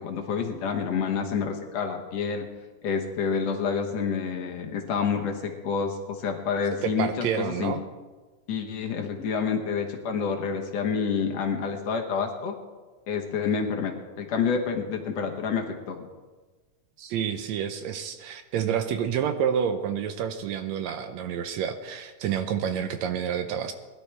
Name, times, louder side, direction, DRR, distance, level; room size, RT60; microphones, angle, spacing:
voice 1, 0.0-2.5 2.8-7.7 8.5-12.6 13.1-16.1, left 6 dB, 65° left, 3 dB, 2.1 m, -28 dB
voice 2, 6.8-7.8 17.0-23.7, right 8 dB, 75° right, 8 dB, 1.8 m, -29 dB
20.5 x 11.5 x 3.4 m, 1.3 s
omnidirectional pair, 3.5 m